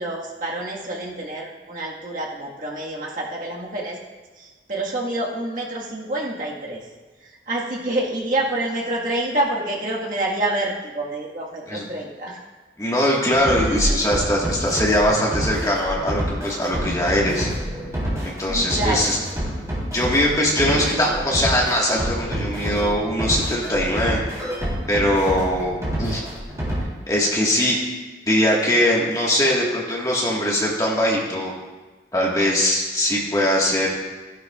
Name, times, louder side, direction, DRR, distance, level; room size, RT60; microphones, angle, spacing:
voice 1, 0.0-4.0 4.4-6.8 7.5-12.4 18.5-19.1, right 1 dB, 50° right, -3 dB, 1.6 m, -27 dB
voice 2, 12.8-17.5 18.2-19.2 19.8-24.5 24.9-25.7 26.0-26.3 27.1-27.8 28.3-31.5 32.1-33.9, equal, 20° left, -3 dB, 1.5 m, -21 dB
sound 1, 13.3-26.8, equal, 20° right, 3.4 m, -27 dB
14.5 x 10.5 x 2.4 m, 1.3 s
head